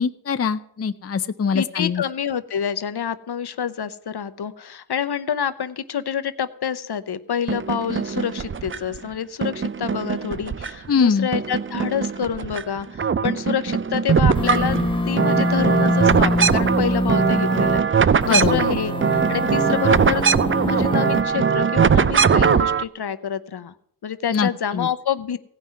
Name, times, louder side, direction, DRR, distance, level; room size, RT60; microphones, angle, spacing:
voice 1, 0.0-2.0 10.9-11.3 18.2-18.6 24.3-24.9, left 6 dB, 35° left, 10 dB, 0.6 m, -22 dB
voice 2, 1.5-14.8 15.1-20.3 20.5-23.7 24.0-25.4, left 8 dB, 65° left, 12 dB, 0.8 m, -27 dB
sound 1, 7.5-9.0 9.4-11.0 11.3-12.6 12.9-22.8, right 6 dB, 30° right, 0.4 m, -21 dB
sound 2, 14.3-17.8 18.2-21.2, left 1 dB, 10° left, 1.3 m, -24 dB
16.5 x 5.7 x 9.3 m, 0.67 s
wide cardioid pair, 85°, 43 cm